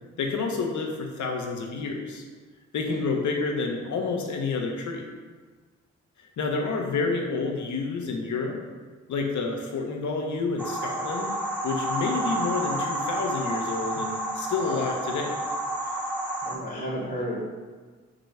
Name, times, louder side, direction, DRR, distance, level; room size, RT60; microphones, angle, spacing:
voice 1, 0.2-2.2 2.7-5.0 6.4-8.6 9.1-11.3 11.6-15.4, left 4 dB, 70° left, 2 dB, 0.7 m, -29 dB
sound 1, 10.6-16.6, right 1 dB, 5° right, 0.8 m, -30 dB
voice 2, 14.6-14.9 16.5-17.4, equal, 30° left, -5 dB, 0.9 m, -33 dB
3.0 x 2.7 x 4.1 m, 1.5 s
supercardioid pair, 45°, 31 cm